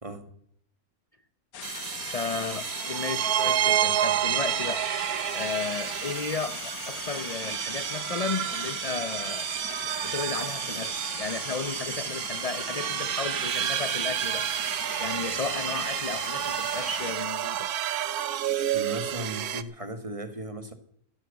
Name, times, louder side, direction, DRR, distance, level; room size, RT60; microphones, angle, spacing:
sound 1, 1.5-17.1, left 9 dB, 70° left, 1.4 m, -40 dB
sound 2, 1.6-19.6, right 11 dB, 75° right, 1.3 m, -30 dB
voice 1, 2.0-4.9 5.3-9.5 10.0-14.7 15.0-17.7, left 4 dB, 50° left, 12 dB, 0.4 m, -34 dB
voice 2, 18.7-20.7, right 2 dB, 20° right, 9 dB, 1.6 m, -36 dB
14.5 x 11.0 x 8.1 m, 0.67 s
omnidirectional pair, 1.6 m